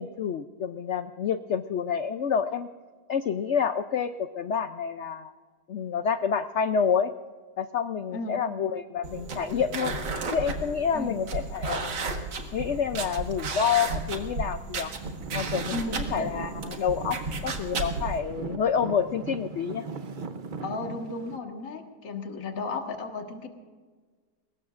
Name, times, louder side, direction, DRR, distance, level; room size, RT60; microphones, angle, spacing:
voice 1, 0.0-2.7 3.1-5.3 5.7-7.1 7.6-9.9 10.3-12.1 12.5-14.9 15.3-19.9, left 7 dB, 70° left, 10 dB, 0.6 m, -28 dB
sound 1, 9.0-18.2, right 3 dB, 90° right, 2.2 m, -34 dB
Traffic noise roadway noise / Engine, 15.0-21.4, right 5 dB, 50° right, 0.6 m, -39 dB
voice 2, 15.7-16.3 20.6-23.5, left 3 dB, 50° left, 3 dB, 1.9 m, -34 dB
22.5 x 20.0 x 2.5 m, 1.5 s
omnidirectional pair, 1.9 m